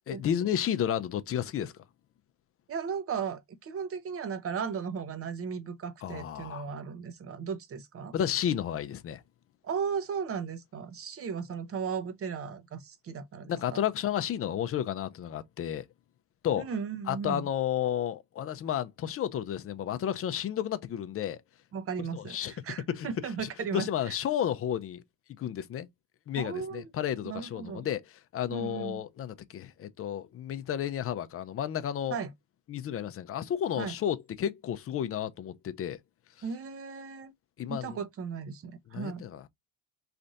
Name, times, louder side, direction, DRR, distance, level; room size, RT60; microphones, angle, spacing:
voice 1, 0.1-1.7 6.0-6.7 8.1-9.2 13.5-15.9 16.4-16.7 17.1-21.4 22.1-22.5 22.9-23.1 23.4-25.0 25.4-25.9 26.3-28.0 28.3-32.2 32.7-36.0 37.6-38.0 38.9-39.5, left 10 dB, 40° left, 0.6 m, -32 dB
voice 2, 2.7-8.1 9.6-13.8 16.6-17.5 21.7-24.1 26.4-26.9 27.2-27.9 28.5-29.0 32.1-32.3 33.8-33.9 36.4-37.3 37.7-39.3, right 6 dB, 40° right, 0.9 m, -36 dB
3.4 x 2.4 x 4.0 m
cardioid pair, 105°, 37 cm